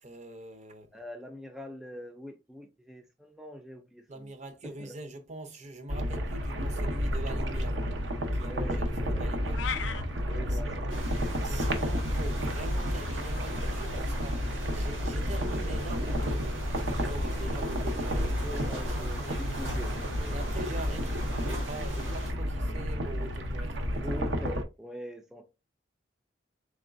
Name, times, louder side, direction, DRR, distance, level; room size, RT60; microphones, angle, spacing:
voice 1, 0.0-0.9 4.1-8.1 8.3-8.8 9.1-9.6 10.5-10.6 11.4-19.4 20.3-24.0, right 2 dB, 40° right, 0.7 m, -44 dB
voice 2, 0.9-4.3 4.6-5.0 8.4-9.3 10.3-11.7 18.1-20.4 20.9-21.0 24.0-25.4, equal, 5° right, 0.4 m, -44 dB
sound 1, 5.9-24.6, equal, 75° right, 0.7 m, -31 dB
sound 2, 9.5-10.0, left 7 dB, 70° left, 0.5 m, -34 dB
sound 3, 10.9-22.3, right 1 dB, 90° right, 1.8 m, -40 dB
3.9 x 3.5 x 2.5 m
head